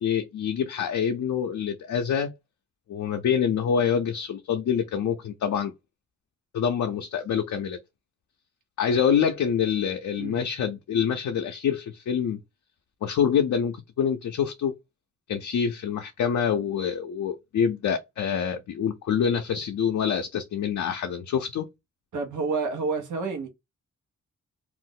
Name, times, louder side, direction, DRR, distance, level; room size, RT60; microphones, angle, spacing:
voice 1, 0.0-2.3 2.9-5.7 6.5-7.8 8.8-12.4 13.0-14.7 15.3-21.7, left 7 dB, 75° left, 0.5 m, -26 dB
voice 2, 22.1-23.5, right 4 dB, 75° right, 0.8 m, -29 dB
2.4 x 2.0 x 3.6 m
cardioid pair, 55°, 30 cm